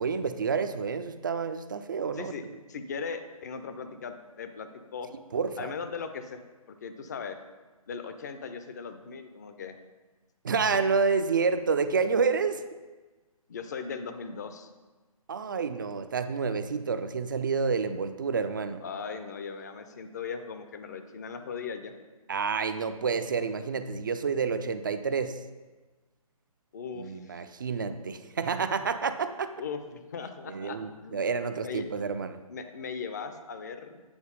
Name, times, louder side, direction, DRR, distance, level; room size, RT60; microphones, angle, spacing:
voice 1, 0.0-2.3 5.3-5.7 10.4-12.6 15.3-18.8 22.3-25.4 27.0-29.5 30.5-32.4, right 5 dB, 35° right, 10 dB, 0.4 m, -29 dB
voice 2, 2.7-5.1 5.6-6.4 6.8-7.4 7.9-9.8 10.7-10.8 13.5-14.7 18.8-21.9 26.7-27.4 29.6-31.3 31.6-31.9 32.5-34.0, left 5 dB, 30° left, 8 dB, 0.5 m, -38 dB
8.7 x 4.1 x 5.3 m, 1.3 s
figure-of-eight pair, 140°, 19 cm